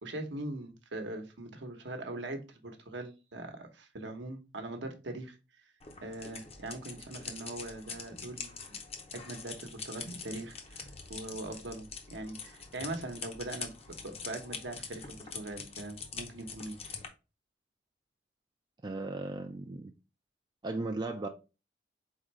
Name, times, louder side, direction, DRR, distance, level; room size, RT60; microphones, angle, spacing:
voice 1, 0.0-5.4 6.0-8.5 9.1-16.8, right 2 dB, 70° right, 0.9 m, -41 dB
sound 1, 5.8-17.1, left 5 dB, 35° left, 0.7 m, -44 dB
voice 2, 18.8-19.9 20.6-21.3, right 2 dB, 25° right, 0.4 m, -36 dB
4.3 x 3.7 x 3.1 m
head